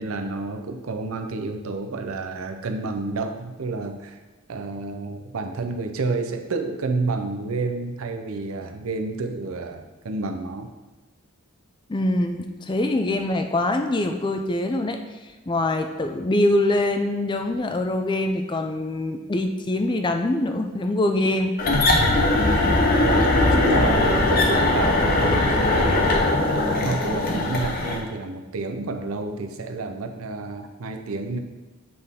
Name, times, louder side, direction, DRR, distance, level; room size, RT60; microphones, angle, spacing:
voice 1, 0.0-4.1 4.5-10.7 23.0-26.1 26.6-31.4, right 3 dB, 75° right, 5 dB, 0.6 m, -29 dB
voice 2, 11.9-15.0 15.5-21.5, left 1 dB, 20° left, 5 dB, 0.3 m, -24 dB
sound 1, 21.6-28.0, left 2 dB, 40° left, 0.8 m, -20 dB
7.7 x 4.0 x 3.6 m, 1.2 s
head